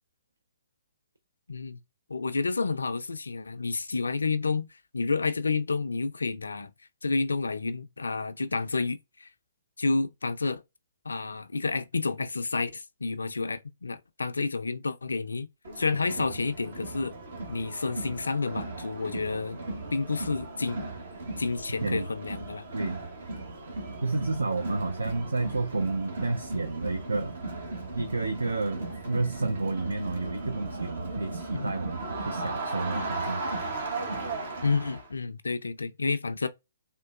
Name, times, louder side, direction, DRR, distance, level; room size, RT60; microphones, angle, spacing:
voice 1, 1.5-1.8 2.1-4.7 4.9-6.7 7.0-9.3 9.8-10.6 11.1-15.5 15.8-17.2 17.5-19.6 19.9-20.9 21.4-22.7 31.5-31.7 34.6-36.5, left 4 dB, 80° left, 0.4 m, -30 dB
Crowd, 15.6-35.1, right 2 dB, 60° right, 1.1 m, -36 dB
voice 2, 22.7-23.0 24.0-27.4 27.9-33.5, right 3 dB, 80° right, 0.4 m, -30 dB
3.6 x 2.2 x 2.3 m
figure-of-eight pair, 125°, 0 cm